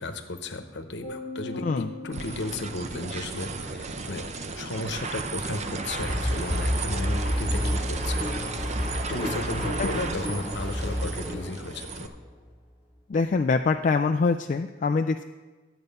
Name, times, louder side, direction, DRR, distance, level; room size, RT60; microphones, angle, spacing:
voice 1, 0.0-4.3 4.6-8.3 9.1-12.1, left 2 dB, 65° left, 7 dB, 1.0 m, -34 dB
sound 1, 1.0-3.5, left 2 dB, 55° right, 2.8 m, -40 dB
sound 2, 2.1-12.1, right 4 dB, 35° right, 0.6 m, -34 dB
sound 3, 6.0-12.0, left 1 dB, 5° right, 3.4 m, -30 dB
voice 2, 13.1-15.2, left 4 dB, 40° left, 6 dB, 0.3 m, -24 dB
11.5 x 8.0 x 5.4 m, 1.3 s
head